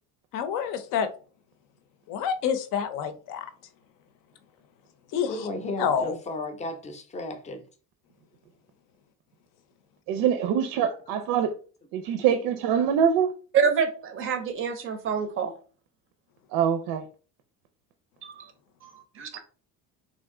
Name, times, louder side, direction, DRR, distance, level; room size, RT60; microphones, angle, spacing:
voice 1, 0.3-1.1 2.1-3.4 5.1-5.5 5.8-6.2, left 7 dB, 65° left, 0.6 m, -28 dB
voice 2, 5.3-7.6 11.1-11.2, left 2 dB, 20° left, 0.5 m, -34 dB
voice 3, 10.1-11.5 11.9-13.3 16.5-17.0, right 8 dB, 90° right, 0.5 m, -24 dB
voice 4, 13.5-15.5 18.2-18.3 18.8-18.9 19.2-19.4, right 6 dB, 40° right, 0.5 m, -26 dB
3.3 x 2.6 x 3.6 m
cardioid pair, 160°, 34 cm